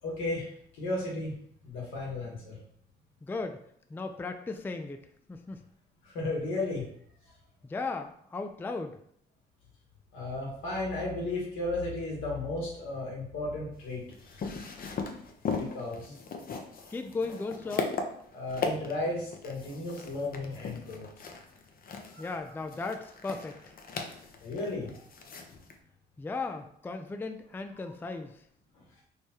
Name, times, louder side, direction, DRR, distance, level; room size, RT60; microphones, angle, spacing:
voice 1, 0.0-1.3 1.6-2.6 6.0-6.8 10.1-14.0 15.5-16.2 18.3-21.1 22.1-22.3 24.4-24.9 27.8-27.9, left 2 dB, 80° left, -3 dB, 1.4 m, -34 dB
voice 2, 3.2-3.6 3.9-5.6 7.6-9.0 16.1-16.2 16.9-17.9 22.2-23.7 26.2-28.4, left 3 dB, 10° left, 6 dB, 0.3 m, -36 dB
sound 1, 13.8-25.7, left 4 dB, 45° left, 0.6 m, -38 dB
3.2 x 2.1 x 4.3 m, 0.67 s
supercardioid pair, 65°, 20 cm